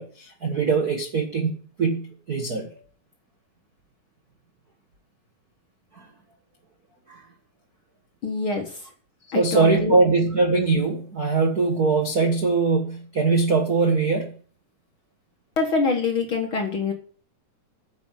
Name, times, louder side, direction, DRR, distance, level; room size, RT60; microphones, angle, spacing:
voice 1, 0.0-2.7 5.9-6.1 7.1-7.2 9.3-14.4, right 4 dB, 60° right, 3 dB, 0.9 m, -22 dB
voice 2, 8.2-8.9 9.3-10.0 15.6-16.9, left 4 dB, 50° left, 2 dB, 1.8 m, -25 dB
9.6 x 7.5 x 7.5 m, 0.43 s
omnidirectional pair, 4.1 m